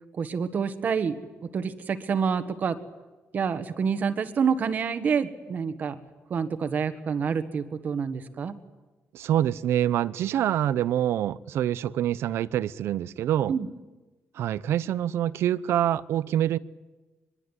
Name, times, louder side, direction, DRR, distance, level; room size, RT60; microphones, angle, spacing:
voice 1, 0.1-1.2 1.5-2.8 3.3-6.0 6.3-8.6 13.5-13.7, right 6 dB, 40° right, 1.5 m, -27 dB
voice 2, 9.1-13.5 14.3-16.6, right 11 dB, 75° right, 0.8 m, -26 dB
23.5 x 22.5 x 9.9 m
cardioid pair, 170°, 4 cm